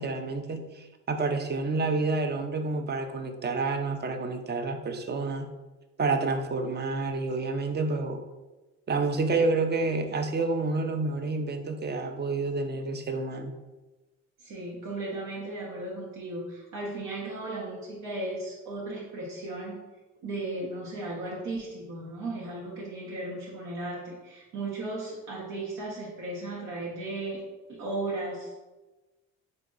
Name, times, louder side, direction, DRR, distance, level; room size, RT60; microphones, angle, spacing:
voice 1, 0.0-5.5 6.0-8.2 8.9-13.5, right 3 dB, 35° right, 6 dB, 0.5 m, -29 dB
voice 2, 14.4-19.8 20.2-27.4 27.7-28.6, right 2 dB, 80° right, -6 dB, 1.0 m, -36 dB
3.6 x 2.8 x 3.8 m, 1.2 s
cardioid pair, 90°, 30 cm